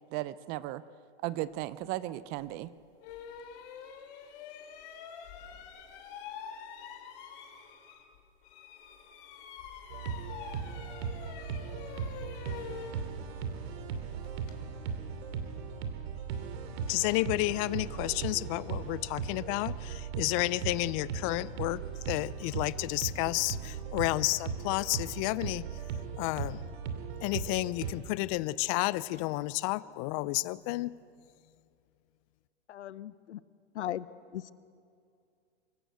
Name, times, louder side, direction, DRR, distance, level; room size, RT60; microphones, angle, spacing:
voice 1, 0.1-0.8 1.2-2.7, right 16 dB, 30° right, 17 dB, 0.5 m, -35 dB
sound 1, 2.4-2.5 3.0-8.2 8.4-14.6, left 7 dB, 50° left, 3.1 m, -46 dB
sound 2, 9.9-27.9, right 6 dB, 60° right, 2.6 m, -38 dB
voice 2, 16.9-21.8 22.1-25.6 26.2-26.6 27.2-30.9, left 20 dB, 30° left, 19 dB, 0.4 m, -31 dB
voice 3, 32.7-33.4 33.7-34.1 34.3-34.5, left 12 dB, 75° left, 18 dB, 0.8 m, -37 dB
24.0 x 14.0 x 8.1 m, 2.4 s
hypercardioid pair, 125°, 34 cm